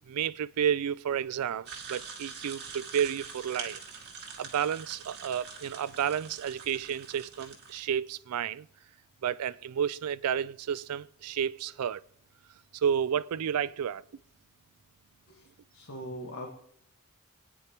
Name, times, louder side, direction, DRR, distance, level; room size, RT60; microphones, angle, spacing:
voice 1, 0.1-3.8 4.4-8.7 9.2-12.0 12.7-14.0, right 8 dB, 85° right, 0.4 m, -31 dB
sound 1, 1.7-7.8, right 6 dB, 50° right, 2.0 m, -44 dB
voice 2, 15.7-16.5, equal, 60° left, 1.5 m, -40 dB
26.5 x 9.3 x 3.0 m
head